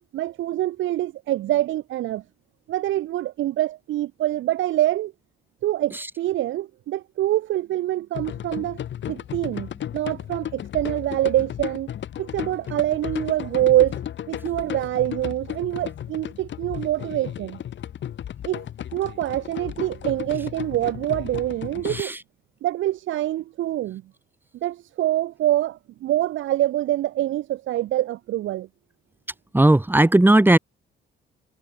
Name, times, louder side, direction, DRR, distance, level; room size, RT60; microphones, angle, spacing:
voice 1, 0.1-2.2 2.7-5.1 5.6-8.8 9.1-11.9 12.2-14.0 14.3-17.6 18.4-18.7 18.9-22.1 22.6-24.0 24.6-28.7, right 14 dB, 80° right, 1.0 m, -25 dB
sound 1, 8.1-22.0, left 10 dB, 70° left, 7.8 m, -34 dB
voice 2, 29.5-30.6, right 1 dB, 10° right, 3.3 m, -16 dB
cardioid pair, 90°, 20 cm